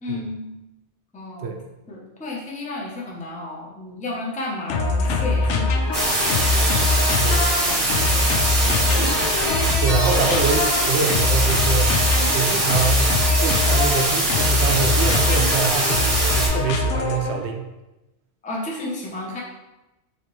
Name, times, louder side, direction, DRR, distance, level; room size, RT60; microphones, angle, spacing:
voice 1, 0.0-0.5 1.1-1.6 1.9-6.9 7.6-8.7 9.2-9.3 10.0-10.1 18.4-19.4, left 2 dB, 10° left, -3 dB, 0.5 m, -33 dB
sound 1, 4.7-17.5, left 3 dB, 85° left, 0.9 m, -22 dB
sound 2, 5.9-16.5, right 1 dB, 35° right, 0.8 m, -22 dB
voice 2, 7.1-7.5 9.8-12.0 12.3-13.1 13.4-17.7, right 5 dB, 70° right, 4 dB, 0.8 m, -25 dB
4.4 x 3.2 x 3.0 m, 1.0 s
omnidirectional pair, 1.2 m